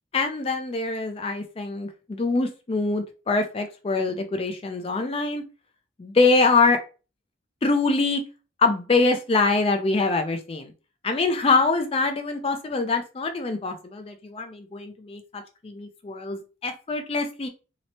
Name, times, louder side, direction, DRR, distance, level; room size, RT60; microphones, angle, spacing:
voice 1, 0.1-5.4 6.0-6.8 7.6-8.2 8.6-10.7 11.0-17.5, left 3 dB, 30° left, 6 dB, 0.3 m, -24 dB
2.9 x 2.1 x 2.7 m, 0.33 s
head